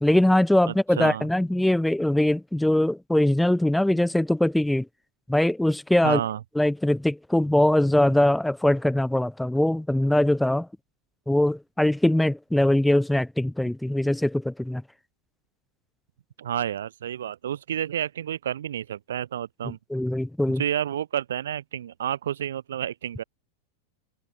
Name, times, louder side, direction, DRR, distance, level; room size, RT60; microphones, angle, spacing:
voice 1, 0.0-4.9 5.3-6.2 6.6-10.7 11.3-14.8 19.6-20.6, left 1 dB, 5° left, 1.7 m, -22 dB
voice 2, 0.7-1.2 6.0-6.4 16.4-19.8 20.6-23.2, right 10 dB, 65° right, 4.0 m, -30 dB
figure-of-eight pair, 90°, 0 cm